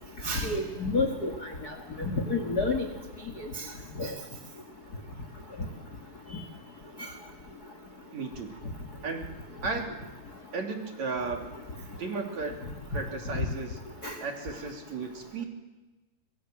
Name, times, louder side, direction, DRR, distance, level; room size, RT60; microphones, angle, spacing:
voice 1, 0.2-1.3 2.0-2.8 4.0-4.1 13.3-13.4 14.0-14.1, left 3 dB, 50° left, 5 dB, 1.2 m, -28 dB
voice 2, 8.1-8.5 9.0-9.9 10.5-11.4 12.0-12.5 12.9-13.8 14.2-15.5, right 4 dB, 45° right, 2 dB, 3.8 m, -34 dB
24.5 x 23.0 x 7.9 m, 1.2 s
omnidirectional pair, 4.7 m